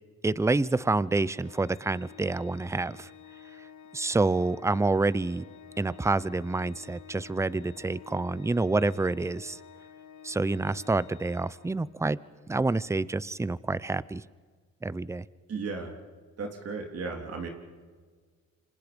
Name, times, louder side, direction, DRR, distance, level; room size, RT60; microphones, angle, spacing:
voice 1, 0.2-3.1 3.9-5.4 5.8-9.6 10.2-12.2 12.5-14.2 14.8-15.2, right 3 dB, 10° right, 19 dB, 0.6 m, -28 dB
Organ, 1.4-12.2, left 8 dB, 80° left, 1.9 m, -51 dB
voice 2, 15.5-15.9 16.4-17.5, right 4 dB, 55° right, 3 dB, 3.3 m, -35 dB
28.5 x 25.5 x 5.3 m, 1.5 s
cardioid pair, 90°, 30 cm